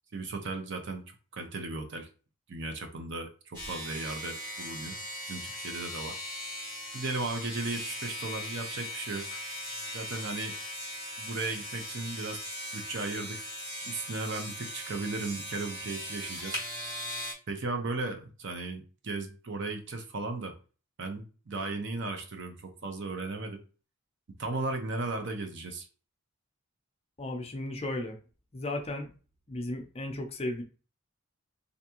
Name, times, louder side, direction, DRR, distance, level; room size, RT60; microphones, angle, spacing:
voice 1, 0.1-1.0 1.3-2.1 2.5-5.0 5.3-6.2 6.9-9.4 9.9-10.6 11.2-12.4 12.7-13.5 13.8-16.6 17.5-20.5 21.0-23.6 24.4-25.9, right 3 dB, 55° right, 5 dB, 0.6 m, -36 dB
sound 1, 3.5-17.3, equal, 20° right, 1.1 m, -39 dB
voice 2, 27.2-28.2 28.5-29.1 29.5-30.6, left 1 dB, 25° left, 4 dB, 0.5 m, -35 dB
3.4 x 2.6 x 2.8 m, 0.36 s
head